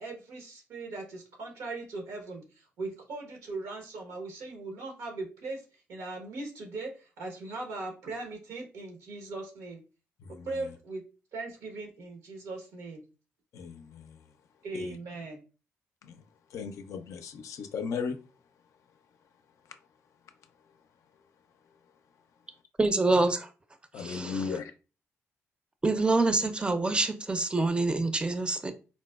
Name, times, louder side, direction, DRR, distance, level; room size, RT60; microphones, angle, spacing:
voice 1, 0.0-5.6 5.9-9.8 10.4-11.0 11.3-13.0 14.6-15.4, right 3 dB, 80° right, 0.9 m, -39 dB
voice 2, 13.5-14.1 14.7-15.0 16.0-16.1 16.5-18.2 23.9-24.7, left 6 dB, 70° left, 0.4 m, -36 dB
voice 3, 22.8-23.5 24.0-24.6 25.8-28.7, right 2 dB, 20° right, 0.5 m, -26 dB
3.9 x 2.0 x 2.2 m
supercardioid pair, 55°, 6 cm